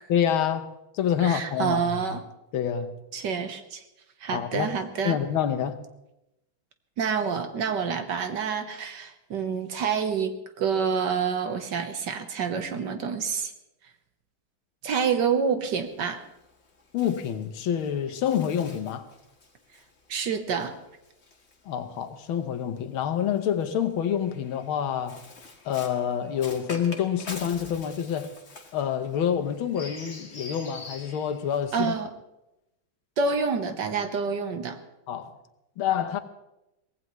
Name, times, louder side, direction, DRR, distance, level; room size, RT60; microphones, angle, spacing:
voice 1, 0.1-2.0 2.5-2.9 4.3-4.7 5.0-5.8 16.9-19.1 21.7-25.2 25.7-28.3 28.7-31.9 35.1-35.3 35.8-36.2, left 9 dB, 80° left, 1.8 m, -27 dB
voice 2, 1.2-2.2 3.1-3.8 4.2-5.2 7.0-13.5 14.8-16.2 20.1-20.7 31.7-32.1 33.2-34.8, right 6 dB, 60° right, 1.6 m, -28 dB
Bird, 15.7-22.3 23.2-32.0, left 3 dB, 35° left, 1.8 m, -46 dB
23.5 x 17.5 x 3.1 m
omnidirectional pair, 2.2 m